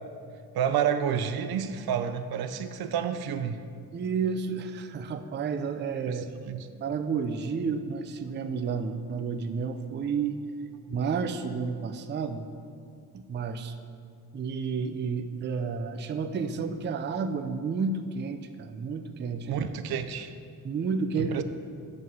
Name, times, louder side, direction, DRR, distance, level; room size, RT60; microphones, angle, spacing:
voice 1, 0.5-3.6 6.1-6.2 6.5-6.6 19.5-20.3 21.2-21.4, right 8 dB, 80° right, 10 dB, 0.6 m, -29 dB
voice 2, 3.9-6.3 6.8-10.4 10.9-12.5 13.1-13.8 14.3-19.6 20.6-21.4, right 5 dB, 30° right, 8 dB, 0.4 m, -31 dB
7.9 x 5.5 x 6.3 m, 2.3 s
wide cardioid pair, 140°, 37 cm